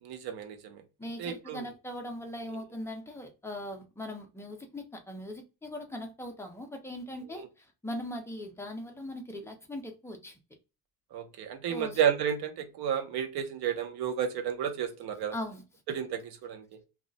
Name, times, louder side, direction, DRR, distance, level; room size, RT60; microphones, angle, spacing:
voice 1, 0.0-0.8 1.2-1.6 2.5-2.6 7.3-7.5 11.1-15.3 15.9-16.6, right 8 dB, 80° right, 0.7 m, -32 dB
voice 2, 1.0-10.4 11.7-12.0 15.3-15.6, left 1 dB, 5° left, 0.5 m, -40 dB
2.3 x 2.1 x 3.8 m
cardioid pair, 150°, 37 cm